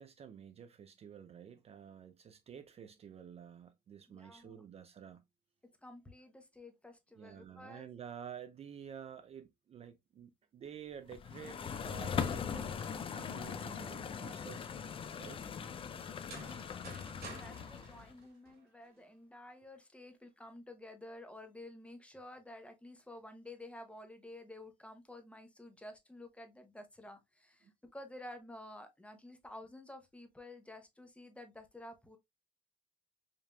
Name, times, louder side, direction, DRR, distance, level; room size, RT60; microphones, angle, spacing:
voice 1, 0.0-5.2 7.2-14.7 15.2-15.5 27.6-27.7, right 8 dB, 35° right, 0.4 m, -50 dB
voice 2, 4.1-4.6 5.8-7.9 16.2-16.7 17.1-32.2, left 1 dB, 5° left, 0.8 m, -52 dB
sound 1, 11.1-18.1, left 7 dB, 30° left, 0.4 m, -40 dB
sound 2, 16.3-19.0, right 4 dB, 75° right, 2.6 m, -52 dB
5.1 x 2.8 x 2.2 m
cardioid pair, 110°, 17 cm